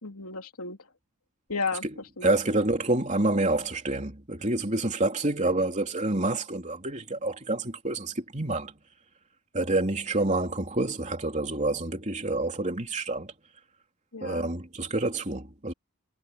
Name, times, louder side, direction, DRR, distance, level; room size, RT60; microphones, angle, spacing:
voice 1, 0.0-0.8 1.5-2.6 14.1-14.5, left 4 dB, 80° left, 3.0 m, -34 dB
voice 2, 2.2-8.7 9.5-13.3 14.2-15.7, right 2 dB, 30° right, 3.4 m, -28 dB
head